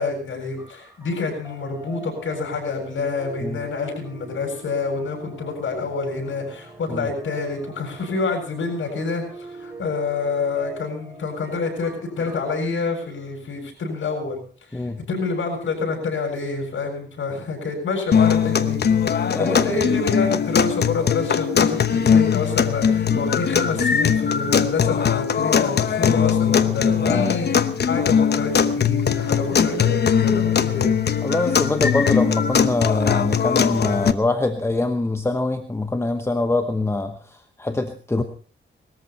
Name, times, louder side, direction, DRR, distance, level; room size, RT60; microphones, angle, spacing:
voice 1, 0.0-14.4 14.7-18.8 19.1-30.9, left 4 dB, 70° left, 2 dB, 7.6 m, -27 dB
sound 1, 0.6-12.4, right 2 dB, 10° right, 3.8 m, -43 dB
voice 2, 14.7-15.0 19.3-19.8 23.1-23.3 27.0-27.3 31.2-38.2, left 2 dB, 15° left, 7 dB, 1.0 m, -24 dB
sound 2, 18.1-34.1, left 7 dB, 55° left, 1.0 m, -20 dB
20.5 x 14.0 x 4.4 m, 0.42 s
wide cardioid pair, 135°, 20 cm